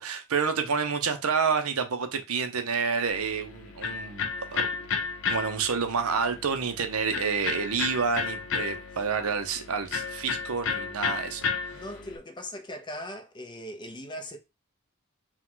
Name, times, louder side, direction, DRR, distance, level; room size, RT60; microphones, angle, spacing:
voice 1, 0.0-4.7 5.3-11.8, right 5 dB, 70° right, 0.7 m, -29 dB
Electric guitar, 3.1-12.2, left 6 dB, 65° left, 0.7 m, -33 dB
voice 2, 11.7-14.4, equal, 20° left, 0.8 m, -39 dB
4.6 x 2.4 x 3.8 m
head